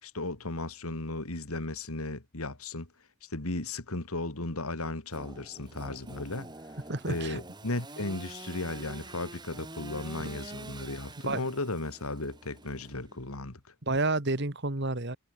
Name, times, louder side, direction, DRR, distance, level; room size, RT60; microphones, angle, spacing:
voice 1, 0.0-2.9 3.2-6.5 7.1-13.7, left 2 dB, 80° left, 2.6 m, -35 dB
Engine / Sawing, 5.1-13.4, right 2 dB, 20° right, 2.4 m, -46 dB
voice 2, 6.9-7.4 10.2-10.3 11.2-11.4 13.8-15.2, right 2 dB, 50° right, 1.8 m, -30 dB
head